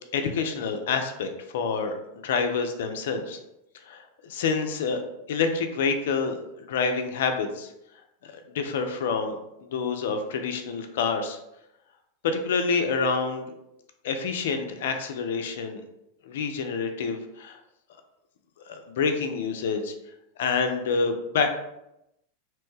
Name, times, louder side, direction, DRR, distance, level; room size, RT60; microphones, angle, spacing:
voice 1, 0.1-2.0 2.2-3.4 3.8-5.0 5.3-7.7 8.2-11.4 12.2-13.5 14.0-15.8 16.2-17.6 18.7-19.9 20.4-21.5, left 5 dB, 75° left, 6 dB, 0.4 m, -27 dB
2.9 x 2.1 x 3.1 m, 0.85 s
hypercardioid pair, 105°, 0 cm